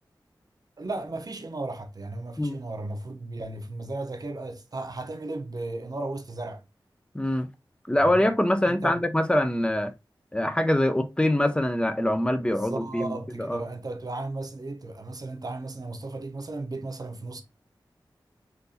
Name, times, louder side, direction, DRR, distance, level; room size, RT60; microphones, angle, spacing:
voice 1, 0.8-6.6 8.0-8.3 8.7-9.1 12.4-17.4, right 2 dB, 50° right, 0.7 m, -35 dB
voice 2, 7.1-7.5 7.9-9.9 10.3-13.6, left 1 dB, 10° left, 0.5 m, -24 dB
3.8 x 2.6 x 2.7 m
wide cardioid pair, 50°, 8 cm